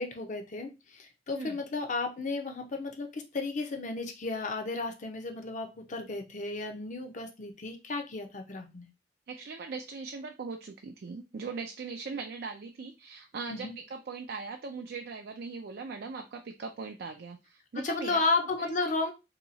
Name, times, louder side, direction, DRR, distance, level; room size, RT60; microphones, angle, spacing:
voice 1, 0.0-8.9 13.5-13.7 17.8-19.1, left 3 dB, 45° left, 5 dB, 0.6 m, -33 dB
voice 2, 9.3-18.2 18.6-18.9, right 4 dB, 60° right, 4 dB, 0.4 m, -40 dB
2.9 x 2.3 x 3.9 m, 0.27 s
head